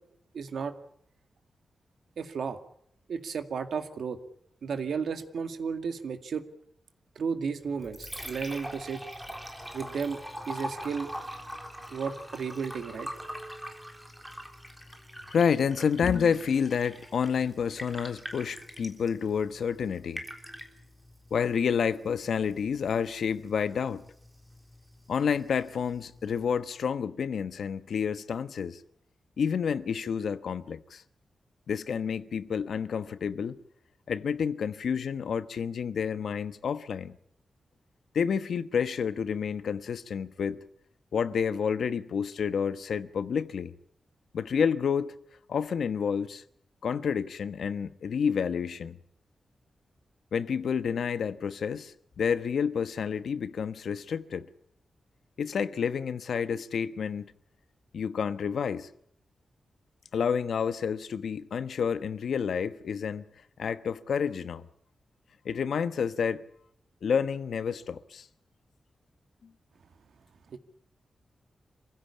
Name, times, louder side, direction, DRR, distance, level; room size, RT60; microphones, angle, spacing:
voice 1, 0.3-0.8 2.2-2.6 3.1-4.2 4.6-6.5 7.2-9.0 9.7-10.2 10.5-11.1 11.9-13.1 70.5-70.6, right 6 dB, 75° right, 2.2 m, -33 dB
Liquid, 7.6-26.6, equal, 5° right, 3.7 m, -44 dB
voice 2, 15.3-20.2 21.3-24.0 25.1-28.8 29.4-31.0 31.7-33.6 34.1-37.2 38.1-40.6 41.1-43.7 44.3-45.1 45.5-46.4 46.8-49.0 50.3-54.5 55.4-57.3 57.9-58.9 60.1-63.3 63.6-64.7 65.4-66.4 67.0-68.3, left 7 dB, 75° left, 1.1 m, -29 dB
27.0 x 16.0 x 8.5 m
wide cardioid pair, 180°, 0 cm